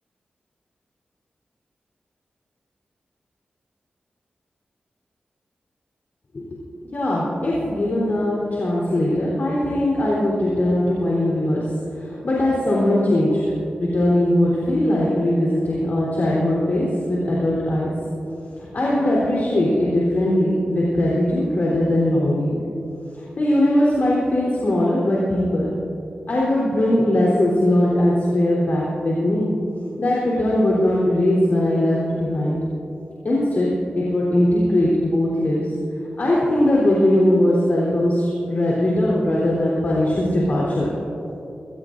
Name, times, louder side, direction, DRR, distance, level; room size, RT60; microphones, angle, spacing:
voice 1, 6.9-17.9 18.6-22.5 23.1-25.7 26.3-29.5 30.0-32.6 33.2-33.7 34.0-35.7 36.2-40.9, left 1 dB, 60° left, -6 dB, 3.8 m, -20 dB
22.5 x 19.0 x 2.7 m, 2.8 s
cardioid pair, 65°, 3 cm